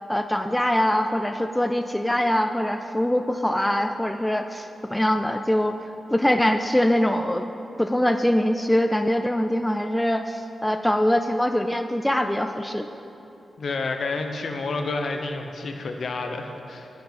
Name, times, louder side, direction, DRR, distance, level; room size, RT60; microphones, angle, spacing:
voice 1, 0.1-5.8 6.1-7.5 7.8-12.9, left 1 dB, 5° left, 7 dB, 0.4 m, -23 dB
voice 2, 13.6-16.9, left 3 dB, 60° left, 5 dB, 1.0 m, -29 dB
11.0 x 5.9 x 8.9 m, 2.8 s
wide cardioid pair, 130°, 0 cm